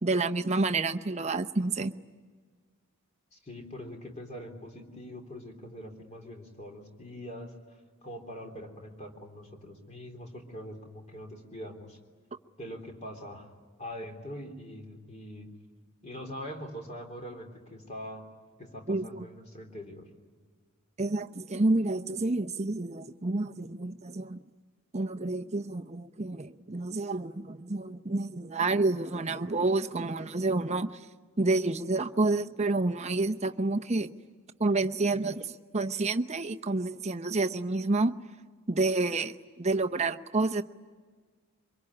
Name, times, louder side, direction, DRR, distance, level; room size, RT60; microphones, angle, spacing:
voice 1, 0.0-1.9 18.9-19.2 21.0-24.4 24.9-30.9 31.4-34.1 34.6-38.1 38.7-40.6, right 2 dB, 30° right, 7 dB, 0.7 m, -29 dB
voice 2, 3.3-7.5 8.0-12.0 12.6-13.5 13.8-15.5 16.0-18.2 18.6-20.1, equal, 30° left, 3 dB, 3.5 m, -43 dB
24.5 x 22.5 x 9.8 m, 1.5 s
head